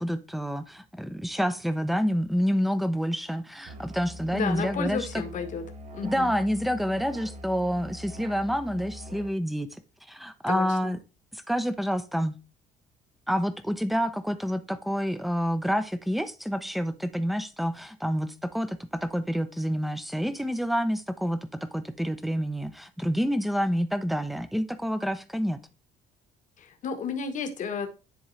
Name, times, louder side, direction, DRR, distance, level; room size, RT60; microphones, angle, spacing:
voice 1, 0.0-5.2 6.0-9.7 10.1-11.0 11.3-12.3 13.3-25.6, equal, ahead, 12 dB, 0.6 m, -28 dB
Musical instrument, 3.6-9.4, equal, 45° right, 1.1 m, -43 dB
voice 2, 4.3-5.6 5.9-6.3 10.5-10.9 26.6-27.9, left 6 dB, 50° left, 6 dB, 1.2 m, -32 dB
10.0 x 3.7 x 3.2 m, 0.31 s
cardioid pair, 110°, 17 cm